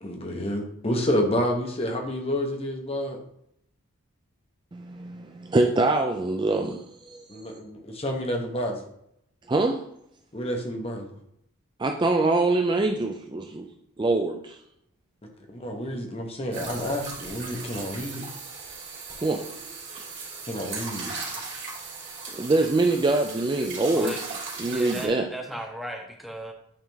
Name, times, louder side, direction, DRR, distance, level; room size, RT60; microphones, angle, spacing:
voice 1, 0.0-3.2 7.3-8.8 10.3-11.1 15.5-18.2 20.5-21.1, equal, 25° left, 3 dB, 1.0 m, -29 dB
voice 2, 4.7-7.2 9.5-9.8 11.8-13.7 14.0-14.6 19.2-19.4 22.3-24.1 24.6-25.3, right 2 dB, 20° right, 4 dB, 0.3 m, -24 dB
sound 1, 16.5-25.1, right 4 dB, 55° right, 2.6 m, -38 dB
voice 3, 23.9-24.2 24.6-26.5, equal, ahead, 1 dB, 0.8 m, -35 dB
8.7 x 3.7 x 3.4 m, 0.74 s
head